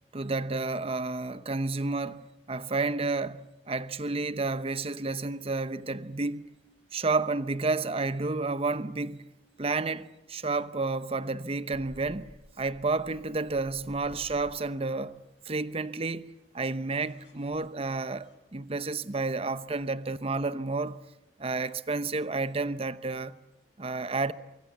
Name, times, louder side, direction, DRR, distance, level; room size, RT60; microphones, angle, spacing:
voice 1, 0.1-6.5 6.9-9.2 9.6-15.2 15.5-21.0 21.4-23.4 23.8-24.3, right 3 dB, 35° right, 0.8 m, -31 dB
sound 1, 11.7-18.4, equal, 85° left, 4.4 m, -55 dB
24.0 x 23.5 x 8.3 m
head